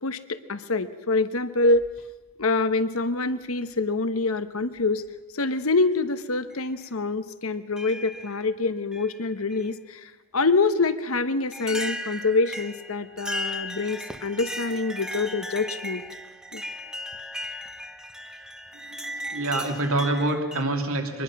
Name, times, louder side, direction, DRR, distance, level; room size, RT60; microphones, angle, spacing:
voice 1, 0.0-1.8 2.4-5.0 5.3-16.0 16.5-16.6, left 3 dB, 75° left, 12 dB, 1.1 m, -25 dB
sound 1, 1.7-2.5 3.7-3.8 4.8-5.1 5.7-5.8 6.5-6.6 7.8-8.5 8.9-9.7 10.8-10.9 11.5-20.6, equal, 5° right, 1.0 m, -36 dB
voice 2, 18.8-21.2, right 2 dB, 70° right, 4 dB, 2.8 m, -27 dB
24.0 x 20.5 x 6.0 m, 1.1 s
head